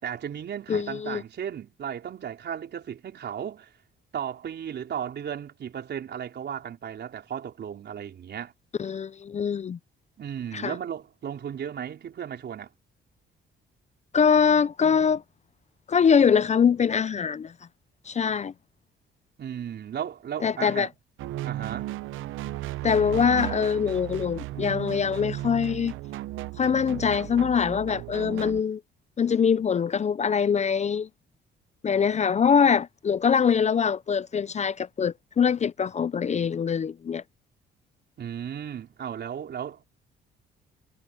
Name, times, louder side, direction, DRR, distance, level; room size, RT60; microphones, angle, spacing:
voice 1, 0.0-3.7 4.1-8.5 10.2-12.7 19.4-20.9 21.4-21.9 38.2-39.8, right 8 dB, 60° right, 4.6 m, -35 dB
voice 2, 0.7-1.2 8.8-9.8 10.5-10.8 14.1-15.2 15.9-17.5 18.1-18.5 20.4-20.9 22.8-25.9 26.6-28.8 29.2-31.1 31.8-37.2, left 6 dB, 35° left, 0.5 m, -23 dB
sound 1, 21.2-28.6, right 16 dB, 85° right, 0.7 m, -35 dB
cardioid pair, 90°, 20 cm